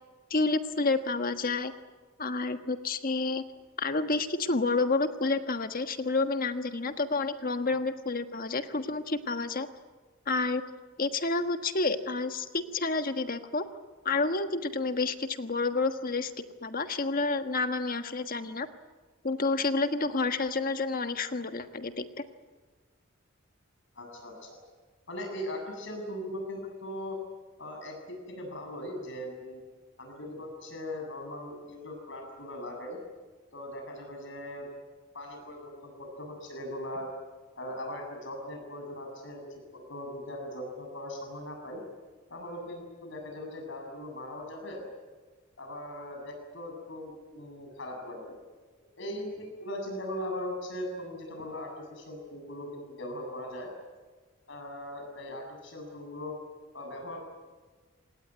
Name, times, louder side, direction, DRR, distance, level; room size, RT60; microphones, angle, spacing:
voice 1, 0.3-1.7 2.2-3.4 3.8-9.7 10.3-10.6 11.0-13.6 14.0-16.3 16.6-18.7 19.2-22.2, left 3 dB, 45° left, 8 dB, 1.5 m, -29 dB
voice 2, 24.0-24.6 25.1-27.2 27.6-28.0 28.3-29.6 30.0-33.0 33.5-34.7 35.1-37.1 37.6-39.4 39.7-41.8 42.3-44.8 45.6-48.4 49.0-53.7 54.5-56.3 56.7-57.2, left 1 dB, 65° left, 3 dB, 7.6 m, -39 dB
27.0 x 19.0 x 9.6 m, 1.4 s
head